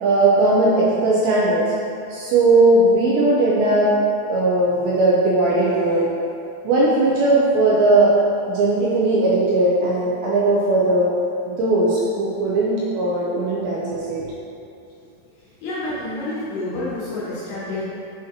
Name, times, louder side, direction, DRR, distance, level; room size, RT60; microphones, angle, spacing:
voice 1, 0.0-1.6 2.1-3.9 4.3-6.1 6.6-8.1 8.5-11.1 11.6-14.3, right 2 dB, 85° right, -6 dB, 2.6 m, -18 dB
voice 2, 15.6-17.8, left 2 dB, 75° left, -9 dB, 2.5 m, -28 dB
7.3 x 4.8 x 3.0 m, 2.6 s
omnidirectional pair, 5.6 m